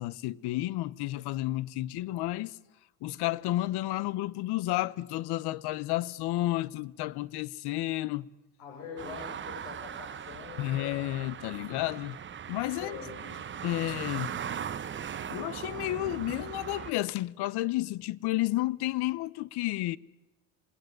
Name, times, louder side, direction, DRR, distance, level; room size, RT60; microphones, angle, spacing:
voice 1, 0.0-2.6 3.0-8.3 10.6-12.2 12.5-13.0 13.6-14.4 15.3-20.0, left 17 dB, 65° left, 1.0 m, -31 dB
voice 2, 8.6-11.3 12.7-13.5, left 6 dB, 85° left, 6.8 m, -45 dB
sound 1, 9.0-16.9, right 8 dB, 25° right, 0.9 m, -39 dB
27.0 x 19.5 x 9.3 m
cardioid pair, 115°, 43 cm